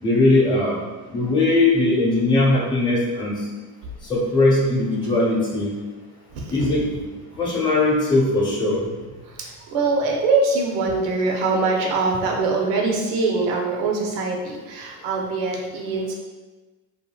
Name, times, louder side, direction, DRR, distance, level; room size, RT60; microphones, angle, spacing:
voice 1, 0.0-0.8 1.1-3.4 4.1-5.7 6.5-6.9 7.4-8.8, left 2 dB, 10° left, -5 dB, 0.8 m, -19 dB
voice 2, 6.3-6.7 9.4-16.1, right 3 dB, 75° right, 0 dB, 0.7 m, -23 dB
2.7 x 2.6 x 2.2 m, 1.2 s
supercardioid pair, 90°, 43 cm